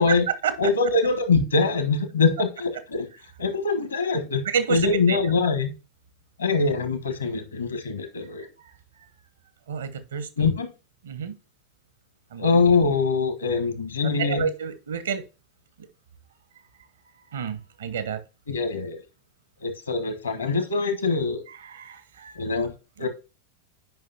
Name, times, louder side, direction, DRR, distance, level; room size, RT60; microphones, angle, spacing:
voice 1, 0.0-0.7 4.4-5.2 9.7-10.5 11.0-11.3 12.3-12.6 14.2-15.2 17.3-18.2 21.6-22.4 23.0-23.1, right 7 dB, 65° right, 0.8 m, -29 dB
voice 2, 0.6-3.1 3.4-4.4 4.7-5.7 6.4-8.5 10.4-10.7 12.4-14.5 18.5-19.0 19.6-21.4 22.4-22.7 23.0-23.1, left 4 dB, 75° left, 1.2 m, -23 dB
9.1 x 5.3 x 2.8 m
figure-of-eight pair, 90°, 0 cm